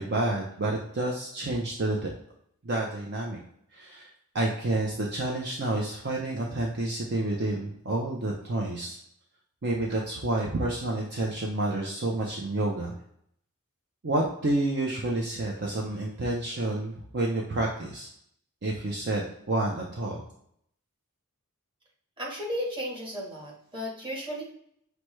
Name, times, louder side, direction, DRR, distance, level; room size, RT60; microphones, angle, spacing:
voice 1, 0.0-2.1 2.6-3.4 3.7-9.0 9.6-12.9 14.0-18.1 18.6-19.2 19.5-20.2, right 2 dB, 50° right, -1 dB, 0.6 m, -29 dB
voice 2, 22.2-24.4, equal, 25° right, -3 dB, 1.3 m, -34 dB
5.8 x 2.2 x 3.1 m, 0.71 s
head